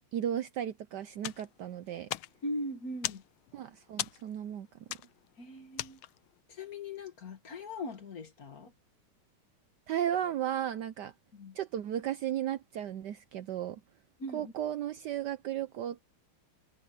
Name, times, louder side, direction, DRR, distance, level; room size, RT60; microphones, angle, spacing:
voice 1, 0.1-2.1 3.5-4.7 9.9-11.1 11.5-13.8 14.3-16.0, right 10 dB, 70° right, 1.1 m, -34 dB
sound 1, 1.2-6.4, left 14 dB, 85° left, 1.6 m, -41 dB
voice 2, 2.4-3.2 5.4-6.0 6.5-8.7 11.3-11.6 14.2-14.5, left 1 dB, 45° left, 2.1 m, -40 dB
omnidirectional pair, 2.3 m